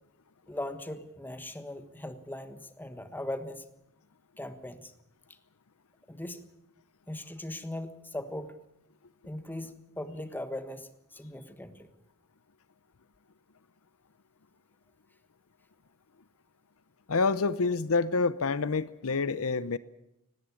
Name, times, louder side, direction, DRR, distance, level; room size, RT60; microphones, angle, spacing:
voice 1, 0.5-3.6 4.4-4.9 6.1-6.4 7.1-8.6 9.2-11.9, left 1 dB, 10° left, 9 dB, 1.4 m, -39 dB
voice 2, 17.1-19.8, left 4 dB, 70° left, 16 dB, 0.8 m, -27 dB
18.5 x 17.5 x 9.9 m, 0.84 s
head